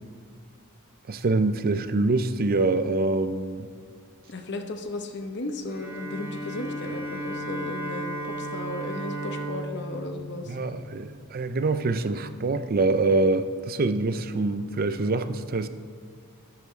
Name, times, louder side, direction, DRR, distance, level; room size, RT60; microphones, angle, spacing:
voice 1, 1.1-3.7 10.5-15.7, right 3 dB, 40° right, 11 dB, 0.5 m, -25 dB
voice 2, 4.3-10.6, left 2 dB, 50° left, 5 dB, 0.8 m, -35 dB
Bowed string instrument, 5.7-11.1, right 1 dB, 10° right, 1.9 m, -35 dB
12.0 x 8.3 x 3.2 m, 2.3 s
head